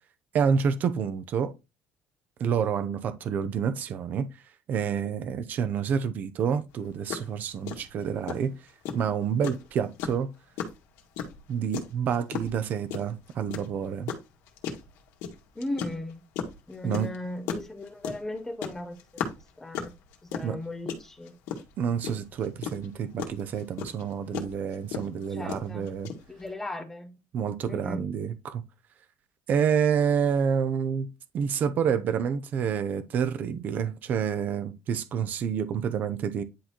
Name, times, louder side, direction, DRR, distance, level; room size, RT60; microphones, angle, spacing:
voice 1, 0.3-1.5 2.4-4.3 4.7-8.5 8.9-10.3 11.5-14.2 16.8-17.1 20.4-20.6 21.8-26.1 27.3-28.6 29.5-31.1 31.3-36.4, right 7 dB, 35° right, 0.6 m, -28 dB
sound 1, 6.7-6.8 7.1-7.3 7.7-26.5, left 7 dB, 65° left, 1.9 m, -35 dB
voice 2, 15.5-16.2 16.7-19.3 19.6-19.9 20.2-21.3 25.3-26.0 26.3-27.2 27.7-28.1, left 1 dB, 10° left, 0.8 m, -37 dB
10.0 x 4.1 x 3.0 m
cardioid pair, 180°, 5 cm